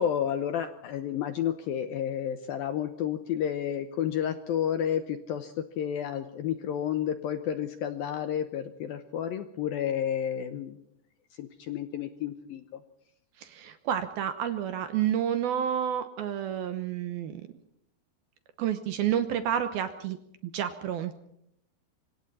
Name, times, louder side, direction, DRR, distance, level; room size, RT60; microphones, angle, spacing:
voice 1, 0.0-10.8 11.4-12.8, left 9 dB, 75° left, 9 dB, 2.2 m, -31 dB
voice 2, 13.4-17.4 18.6-20.2 20.4-21.2, right 9 dB, 70° right, 9 dB, 2.5 m, -30 dB
27.0 x 25.0 x 4.2 m, 0.75 s
omnidirectional pair, 5.3 m